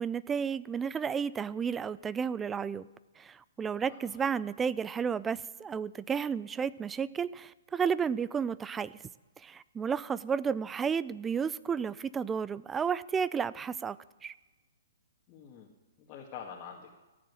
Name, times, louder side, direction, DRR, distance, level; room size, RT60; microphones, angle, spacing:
voice 1, 0.0-2.9 3.2-8.9 9.4-14.3, right 6 dB, 15° right, 19 dB, 0.4 m, -32 dB
voice 2, 3.8-4.2 15.3-15.7 16.0-16.9, left 7 dB, 30° left, -3 dB, 2.0 m, -46 dB
15.5 x 7.4 x 9.8 m, 1.1 s
hypercardioid pair, 135°, 0 cm